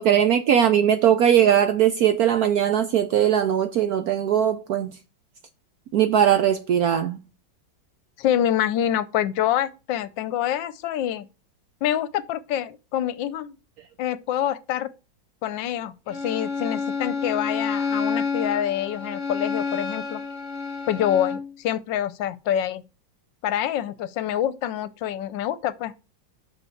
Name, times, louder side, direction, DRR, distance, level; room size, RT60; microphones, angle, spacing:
voice 1, 0.0-4.9 5.9-7.2, right 9 dB, 70° right, 0.9 m, -20 dB
voice 2, 8.2-11.3 11.8-13.6 14.0-14.9 15.4-20.2 20.9-22.8 23.4-25.9, left 11 dB, 75° left, 1.3 m, -26 dB
Bowed string instrument, 16.1-21.5, left 5 dB, 35° left, 0.8 m, -29 dB
5.9 x 5.3 x 6.3 m
omnidirectional pair, 2.1 m